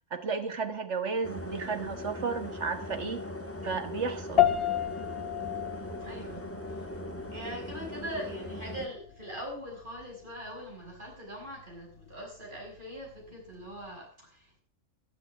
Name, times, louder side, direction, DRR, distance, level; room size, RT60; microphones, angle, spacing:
voice 1, 0.1-3.2 3.6-4.5, right 5 dB, 60° right, 7 dB, 1.9 m, -33 dB
sound 1, 1.2-8.9, left 1 dB, 10° left, 1.5 m, -40 dB
sound 2, 4.4-14.0, left 11 dB, 50° left, 1.1 m, -34 dB
voice 2, 5.1-5.4 6.0-6.9 7.3-14.6, equal, 40° right, -1 dB, 6.5 m, -42 dB
13.0 x 11.5 x 6.1 m, 0.42 s
omnidirectional pair, 1.4 m